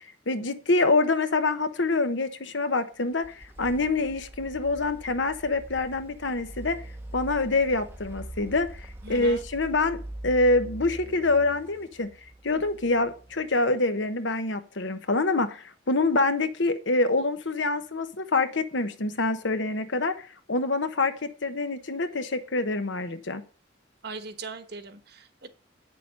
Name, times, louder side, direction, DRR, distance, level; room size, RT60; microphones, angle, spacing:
voice 1, 0.3-6.8 7.1-10.0 10.2-12.1 12.4-23.4, left 2 dB, 70° left, 9 dB, 1.1 m, -26 dB
sound 1, 3.0-13.8, right 1 dB, 10° right, 0.7 m, -43 dB
voice 2, 9.0-9.4 24.0-25.5, right 3 dB, 55° right, 9 dB, 1.2 m, -40 dB
8.8 x 6.8 x 5.4 m, 0.37 s
head